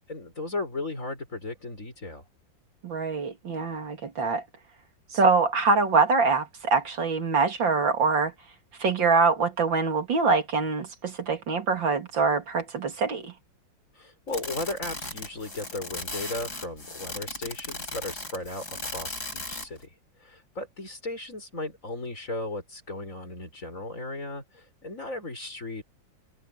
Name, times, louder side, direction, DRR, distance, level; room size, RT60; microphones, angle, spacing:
voice 1, 0.1-2.3 13.9-19.9 20.2-25.8, left 2 dB, 45° left, 6.0 m, -36 dB
voice 2, 2.8-4.4 5.1-8.3 8.8-13.3, right 4 dB, 85° right, 3.3 m, -24 dB
sound 1, 14.3-19.8, left 2 dB, 60° left, 6.7 m, -37 dB
omnidirectional pair, 2.0 m